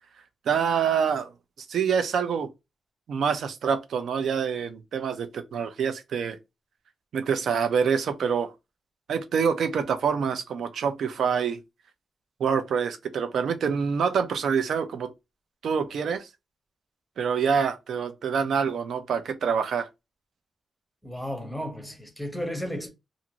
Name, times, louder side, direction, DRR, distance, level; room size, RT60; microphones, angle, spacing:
voice 1, 0.5-1.3 1.7-2.5 3.1-6.4 7.1-8.5 9.1-11.6 12.4-15.1 15.6-16.3 17.2-19.9, right 6 dB, 70° right, 0.5 m, -26 dB
voice 2, 21.0-22.9, equal, ahead, 0.7 m, -33 dB
2.5 x 2.5 x 2.8 m
wide cardioid pair, 175°, 0 cm